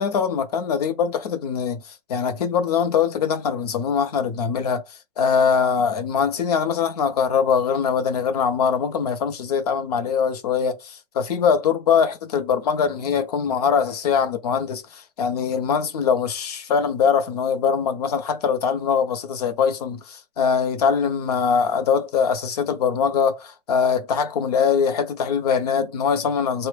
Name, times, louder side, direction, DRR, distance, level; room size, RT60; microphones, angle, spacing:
voice 1, 0.0-26.7, left 6 dB, 45° left, 0.5 m, -22 dB
3.4 x 2.1 x 3.2 m
hypercardioid pair, 175°, 29 cm